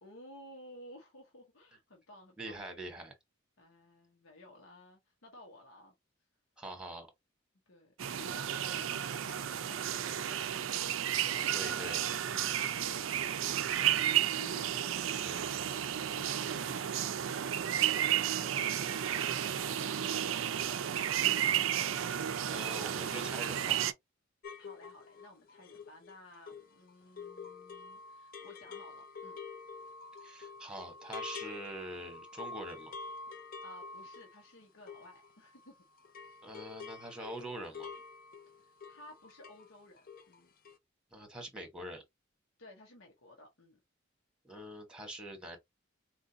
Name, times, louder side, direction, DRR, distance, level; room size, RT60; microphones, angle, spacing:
voice 1, 0.0-2.6 3.6-5.9 7.7-10.7 11.0-15.4 15.8-21.7 24.6-29.4 33.6-35.8 38.6-40.5 42.6-43.8, left 1 dB, 80° left, 1.1 m, -55 dB
voice 2, 2.4-3.1 6.6-7.1 11.5-12.0 15.1-15.4 22.5-23.8 30.2-32.9 36.4-37.9 41.1-42.0 44.4-45.6, right 1 dB, 5° right, 1.1 m, -44 dB
sound 1, 8.0-23.9, right 10 dB, 70° right, 0.4 m, -32 dB
sound 2, 24.4-35.7 36.0-39.7 40.0-40.4 40.6-40.8, left 4 dB, 45° left, 0.5 m, -47 dB
4.4 x 2.5 x 2.7 m
head